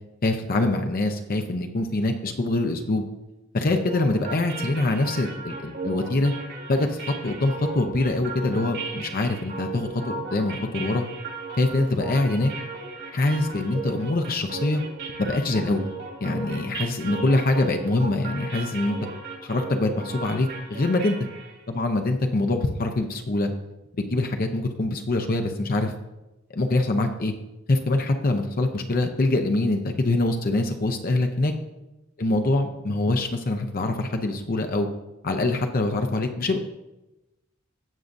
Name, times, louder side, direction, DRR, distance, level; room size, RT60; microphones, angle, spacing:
voice 1, 0.2-3.0 3.5-6.3 6.7-9.9 10.3-11.0 11.6-12.5 13.1-14.8 15.2-15.9 16.2-19.0 19.4-21.2 21.7-23.5 24.0-25.9 26.5-27.3 27.7-31.5 32.2-34.9 35.2-36.6, left 2 dB, 45° left, 5 dB, 0.7 m, -24 dB
sound 1, 3.7-21.6, right 3 dB, 60° right, 2.5 m, -36 dB
16.5 x 6.4 x 2.6 m, 0.99 s
head